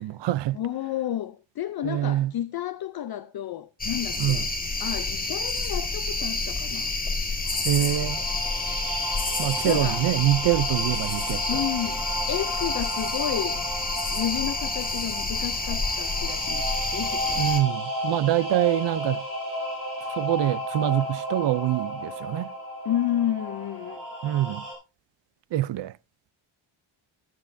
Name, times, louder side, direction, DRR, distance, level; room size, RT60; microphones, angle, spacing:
voice 1, 0.0-0.6 1.8-2.3 4.2-4.4 7.6-8.2 9.4-11.6 17.4-19.2 20.2-22.5 24.2-24.6 25.5-25.9, right 14 dB, 65° right, 0.5 m, -25 dB
voice 2, 0.5-4.5 4.8-6.9 9.6-10.1 11.5-13.6 14.1-17.5 22.8-24.0, left 11 dB, 50° left, 0.5 m, -31 dB
sound 1, 3.8-17.6, left 3 dB, 20° left, 1.7 m, -29 dB
sound 2, 7.4-24.7, equal, 40° right, 4.9 m, -34 dB
19.5 x 7.8 x 2.6 m
wide cardioid pair, 180°, 48 cm